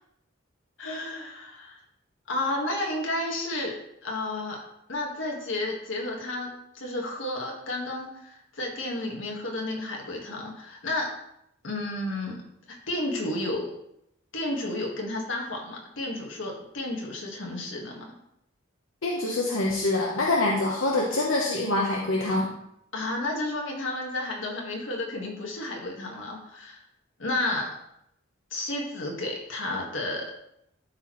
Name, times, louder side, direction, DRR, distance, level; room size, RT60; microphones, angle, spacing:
voice 1, 0.8-1.8 2.3-4.6 4.9-6.5 6.7-11.2 11.6-12.4 12.7-13.7 14.3-18.1 22.9-26.8 27.2-27.8 28.5-30.3, left 2 dB, 70° left, -1 dB, 1.7 m, -32 dB
voice 2, 19.0-22.5, left 2 dB, 85° left, -2 dB, 1.0 m, -25 dB
12.5 x 4.4 x 3.1 m, 0.77 s
head